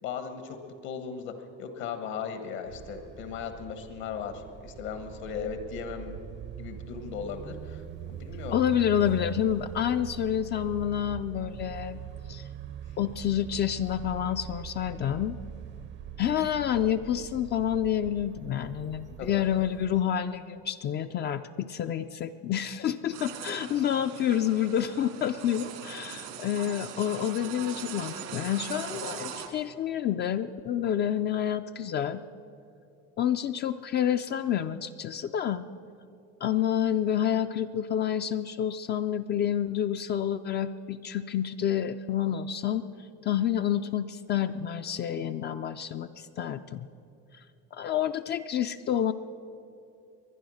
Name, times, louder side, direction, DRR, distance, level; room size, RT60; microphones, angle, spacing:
voice 1, 0.0-1.3 1.6-6.1 6.6-7.8 8.1-8.7 19.2-19.5, left 7 dB, 70° left, 7 dB, 1.5 m, -37 dB
sound 1, 2.6-20.0, right 9 dB, 40° right, 0.6 m, -42 dB
voice 2, 8.5-12.0 12.3-12.5 13.0-15.4 16.2-32.2 33.2-35.7 36.4-42.9 43.2-46.9 47.3-47.4 47.7-49.1, left 10 dB, 35° left, 9 dB, 0.4 m, -28 dB
sound 2, 23.1-29.5, right 8 dB, 85° right, 2.3 m, -40 dB
22.5 x 10.0 x 6.3 m, 2.8 s
cardioid pair, 135°, 30 cm